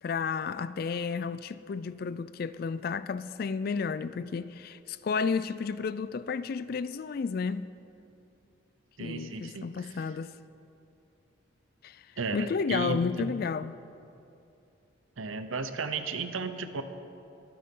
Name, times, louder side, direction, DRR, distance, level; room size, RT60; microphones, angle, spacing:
voice 1, 0.0-7.7 9.0-10.3 11.8-12.0 12.3-13.8, left 5 dB, 45° left, 0.3 m, -32 dB
voice 2, 9.0-9.9 12.2-13.3 15.2-16.8, right 4 dB, 85° right, 0.8 m, -34 dB
22.5 x 9.4 x 3.8 m
head